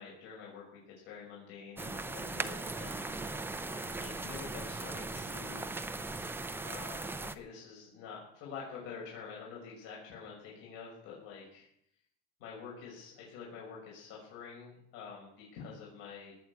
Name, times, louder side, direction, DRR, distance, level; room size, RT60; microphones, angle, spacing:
voice 1, 0.0-3.1 3.6-5.6 6.6-11.7 12.4-16.3, left 6 dB, 75° left, -4 dB, 6.4 m, -47 dB
sound 1, 1.8-7.4, right 3 dB, 5° right, 0.5 m, -39 dB
18.5 x 8.2 x 8.2 m, 0.72 s
cardioid pair, 150°, 40 cm